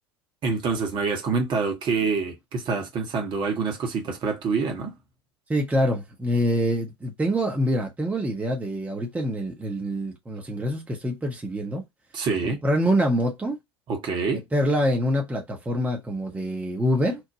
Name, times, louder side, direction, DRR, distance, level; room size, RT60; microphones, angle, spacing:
voice 1, 0.4-5.0 12.1-12.6 13.9-14.5, right 4 dB, 35° right, 0.9 m, -26 dB
voice 2, 5.5-11.8 12.4-13.6 14.5-17.2, equal, 10° right, 0.7 m, -25 dB
3.0 x 2.1 x 3.8 m
figure-of-eight pair, 75°, 14 cm